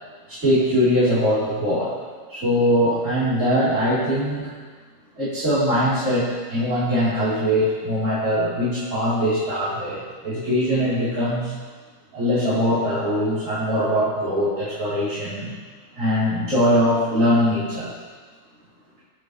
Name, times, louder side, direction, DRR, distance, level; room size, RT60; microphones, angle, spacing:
voice 1, 0.3-1.9 2.3-4.5 5.2-11.5 12.1-15.5 15.9-17.9, equal, 50° right, -12 dB, 4.7 m, -21 dB
23.0 x 8.2 x 3.4 m, 1.4 s
omnidirectional pair, 1.7 m